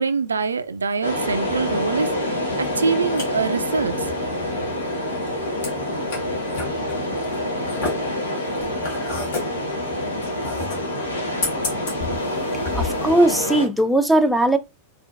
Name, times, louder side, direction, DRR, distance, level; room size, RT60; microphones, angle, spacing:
voice 1, 0.0-4.1, right 5 dB, 75° right, 0.3 m, -24 dB
sound 1, 1.0-13.7, left 1 dB, 75° left, 0.9 m, -26 dB
sound 2, 2.7-13.1, left 3 dB, 55° left, 1.4 m, -33 dB
voice 2, 12.7-14.6, right 1 dB, ahead, 0.4 m, -18 dB
4.3 x 2.6 x 2.4 m
figure-of-eight pair, 90°, 0 cm